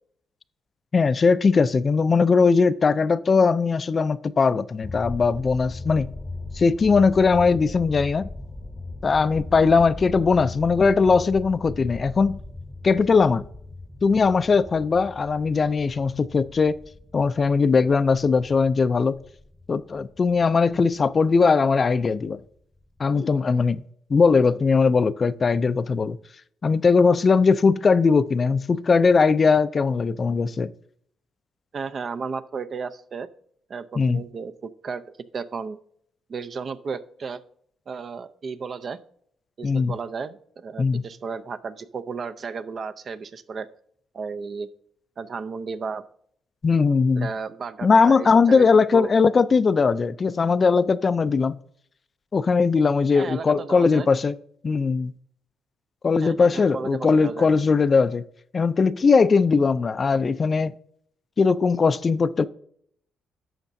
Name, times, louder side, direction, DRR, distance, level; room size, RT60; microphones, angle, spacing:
voice 1, 0.9-6.1 6.5-8.3 9.0-12.4 12.8-13.4 14.0-16.8 17.1-19.2 19.7-22.4 23.0-23.8 24.1-26.2 26.6-30.7 34.0-34.2 39.6-39.9 40.8-41.0 46.6-47.3 47.8-51.6 52.3-54.3 54.6-55.1 56.0-58.2 58.5-60.7 61.4-62.5, left 4 dB, 35° left, 0.4 m, -20 dB
sound 1, 4.8-20.8 21.1-21.2 21.5-21.6 21.8-22.1 22.3-22.6 23.0-23.1, left 2 dB, 10° left, 0.8 m, -39 dB
voice 2, 31.7-33.3 33.7-35.0 35.3-35.8 36.3-37.4 37.9-39.0 39.6-43.7 44.1-44.7 45.2-46.1 47.2-49.1 53.2-54.1 56.2-57.5, right 5 dB, 45° right, 0.5 m, -33 dB
11.5 x 7.2 x 2.6 m
cardioid pair, 90°, 0 cm